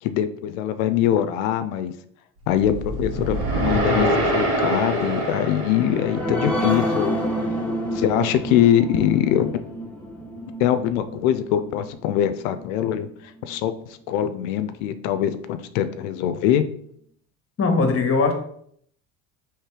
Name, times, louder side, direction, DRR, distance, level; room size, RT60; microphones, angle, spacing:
voice 1, 0.0-1.9 2.5-7.2 7.9-9.6 10.6-13.1 13.5-13.7 14.1-16.6, left 10 dB, 75° left, 11 dB, 0.5 m, -22 dB
sound 1, 2.5-6.9, right 1 dB, 75° right, 1.7 m, -25 dB
sound 2, 5.6-12.6 13.0-13.1 13.5-13.6, equal, 5° left, 0.9 m, -29 dB
voice 2, 17.6-18.3, left 4 dB, 35° left, 4 dB, 1.0 m, -19 dB
3.2 x 3.2 x 4.5 m, 0.66 s
hypercardioid pair, 80°, 41 cm